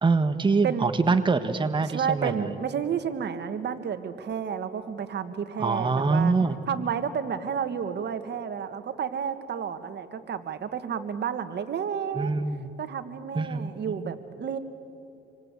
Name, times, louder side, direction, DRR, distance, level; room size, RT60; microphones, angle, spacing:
voice 1, 0.0-2.5 5.6-6.6 12.2-12.7 13.3-14.1, right 4 dB, 25° right, 8 dB, 1.3 m, -25 dB
voice 2, 1.9-6.3 6.7-12.3 12.8-14.6, right 7 dB, 60° right, 10 dB, 1.8 m, -31 dB
27.0 x 25.0 x 8.4 m, 2.7 s
cardioid pair, 90°, 20 cm